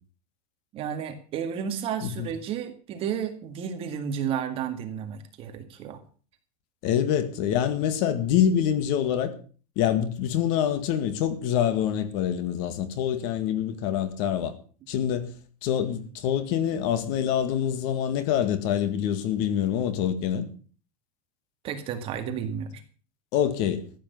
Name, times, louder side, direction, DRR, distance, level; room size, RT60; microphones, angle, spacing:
voice 1, 0.7-6.0 21.6-22.8, right 8 dB, 30° right, 2.0 m, -32 dB
voice 2, 6.8-9.3 9.8-14.5 14.9-15.3 15.6-20.5 23.3-23.8, left 9 dB, 45° left, 1.9 m, -25 dB
14.5 x 8.9 x 7.0 m
supercardioid pair, 165°, 20 cm